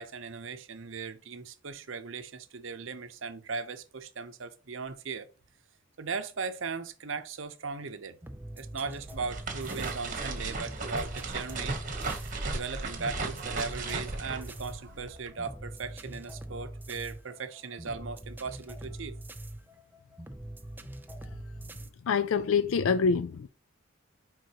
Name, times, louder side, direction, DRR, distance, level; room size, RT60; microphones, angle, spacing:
voice 1, 0.0-5.3 6.0-8.2 8.6-11.8 12.4-19.2, right 4 dB, 65° right, 0.8 m, -38 dB
sound 1, 8.2-21.9, right 1 dB, 10° right, 0.4 m, -43 dB
sound 2, 9.0-15.3, right 3 dB, 40° right, 1.3 m, -36 dB
voice 2, 22.0-23.5, left 5 dB, 70° left, 0.4 m, -26 dB
9.2 x 3.8 x 2.9 m
head